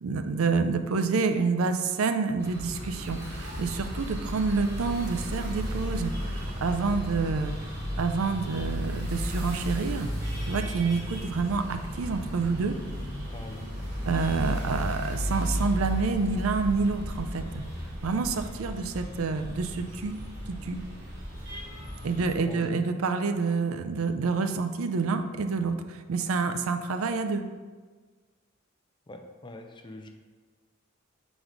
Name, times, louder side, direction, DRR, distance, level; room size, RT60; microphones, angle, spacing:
voice 1, 0.0-7.5 8.0-10.1 10.5-12.7 14.1-17.6 18.0-20.2 20.5-20.8 22.0-27.5, right 4 dB, 85° right, 8 dB, 0.5 m, -28 dB
sound 1, 2.4-22.3, equal, 50° right, 1.7 m, -34 dB
voice 2, 13.0-13.6 22.1-22.8 29.1-30.1, left 1 dB, 25° left, 5 dB, 0.5 m, -44 dB
4.6 x 4.1 x 5.0 m, 1.4 s
head